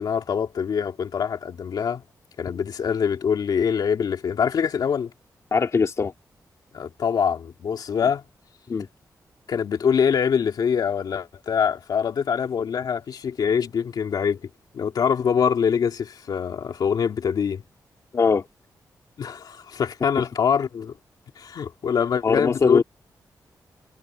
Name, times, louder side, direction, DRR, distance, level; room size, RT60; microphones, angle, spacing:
voice 1, 0.0-2.0 2.4-5.1 6.7-8.2 9.5-14.4 14.7-17.6 19.2-20.9 21.4-22.8, left 7 dB, 75° left, 2.5 m, -24 dB
voice 2, 5.5-6.1 8.7-8.9 18.1-18.5 22.2-22.8, left 5 dB, 45° left, 2.0 m, -20 dB
wide cardioid pair, 140°, 7 cm